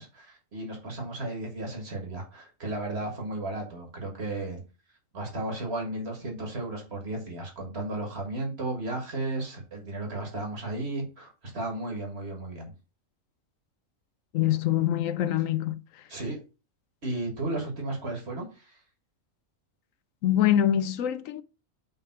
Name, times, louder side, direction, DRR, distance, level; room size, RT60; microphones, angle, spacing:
voice 1, 0.0-4.6 5.1-12.7 16.1-16.4 17.0-18.8, right 2 dB, 50° right, 2.1 m, -34 dB
voice 2, 14.3-15.8 20.2-21.4, left 11 dB, 80° left, 1.0 m, -24 dB
5.6 x 3.6 x 5.8 m
omnidirectional pair, 1.4 m